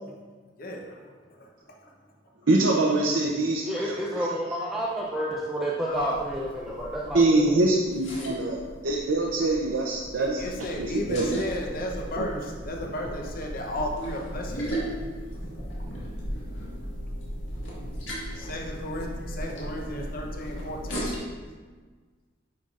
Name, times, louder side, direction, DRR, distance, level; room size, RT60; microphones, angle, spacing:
voice 1, 0.6-1.1 1.4-1.5 5.8-6.2 10.2-15.5 18.3-21.2, left 1 dB, 50° left, 1 dB, 0.9 m, -34 dB
voice 2, 2.5-4.0 7.1-10.4 10.8-11.4 12.2-12.3, right 2 dB, 80° right, -2 dB, 0.7 m, -24 dB
voice 3, 3.6-7.6, equal, ahead, -5 dB, 0.5 m, -30 dB
sound 1, 5.9-21.2, equal, 85° left, 1.8 m, -37 dB
9.4 x 5.5 x 2.5 m, 1.5 s
head